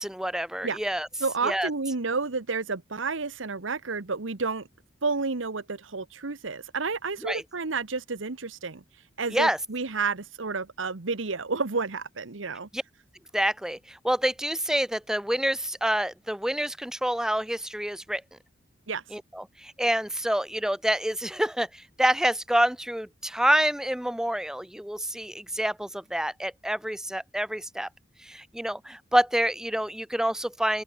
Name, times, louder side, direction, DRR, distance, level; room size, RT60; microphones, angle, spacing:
voice 1, 0.0-1.1 1.4-1.7 7.2-7.4 9.3-9.6 12.7-12.8 13.3-18.2 19.1-27.9 28.2-30.8, right 1 dB, 5° right, 0.6 m, -27 dB
voice 2, 1.2-4.7 5.0-8.8 9.2-12.7 18.9-19.0, right 4 dB, 85° right, 1.2 m, -30 dB
open air
head